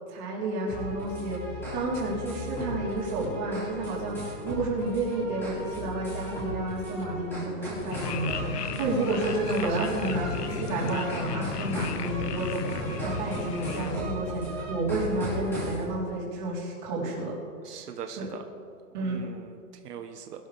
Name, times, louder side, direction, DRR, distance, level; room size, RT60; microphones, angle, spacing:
voice 1, 0.1-1.4 1.7-17.3 18.2-18.3 18.9-19.2, right 2 dB, 30° right, -6 dB, 4.1 m, -31 dB
sound 1, 0.7-15.8, equal, 5° left, 3.0 m, -36 dB
sound 2, 7.9-14.0, left 7 dB, 85° left, 1.2 m, -35 dB
voice 2, 17.6-18.4 19.0-20.5, right 8 dB, 85° right, 5 dB, 1.3 m, -41 dB
21.0 x 12.0 x 3.6 m, 2.4 s
hypercardioid pair, 180°, 46 cm